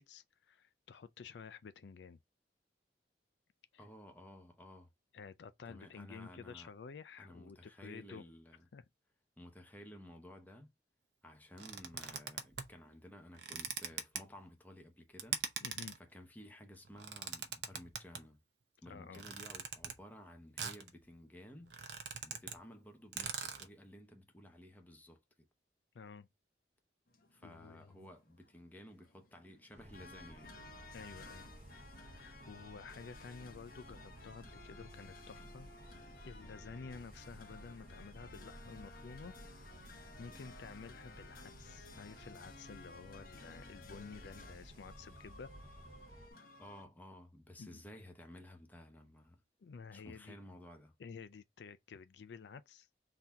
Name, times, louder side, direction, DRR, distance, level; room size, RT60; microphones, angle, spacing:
voice 1, 0.0-2.2 3.7-3.8 5.1-8.2 8.7-8.8 15.6-16.0 18.8-19.2 25.9-26.3 27.4-28.1 30.9-31.5 32.0-35.7 36.2-39.3 39.9-45.5 47.6-47.8 49.6-50.4 51.0-52.9, left 5 dB, 75° left, 0.4 m, -51 dB
voice 2, 3.8-4.9 5.7-6.7 7.2-8.7 9.4-10.7 11.2-15.4 16.0-18.4 18.8-21.7 22.2-25.5 27.3-30.6 40.3-40.5 46.6-49.4 49.9-50.9, equal, 10° left, 0.9 m, -54 dB
sound 1, 11.6-12.7 13.3-14.2 15.2-16.0 16.8-18.2 19.1-20.0 20.6-20.9 21.3-21.4 21.6-22.6 22.8-22.9 23.1-23.7, right 7 dB, 80° right, 0.8 m, -42 dB
sound 2, 27.1-46.8, left 3 dB, 55° left, 1.0 m, -57 dB
sound 3, 29.7-46.3, right 1 dB, 40° right, 0.7 m, -55 dB
3.9 x 2.8 x 4.5 m
head